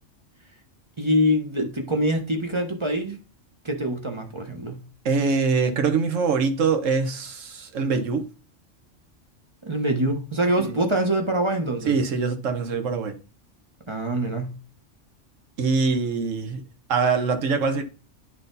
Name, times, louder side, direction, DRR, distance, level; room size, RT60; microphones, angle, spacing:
voice 1, 1.0-3.2 3.6-4.8 9.6-11.9 13.9-14.6, equal, 25° right, 1.0 m, -24 dB
voice 2, 5.0-8.3 10.6-10.8 11.8-13.1 15.6-16.6 16.9-17.8, right 5 dB, 85° right, 1.4 m, -23 dB
9.7 x 4.1 x 4.0 m
omnidirectional pair, 1.3 m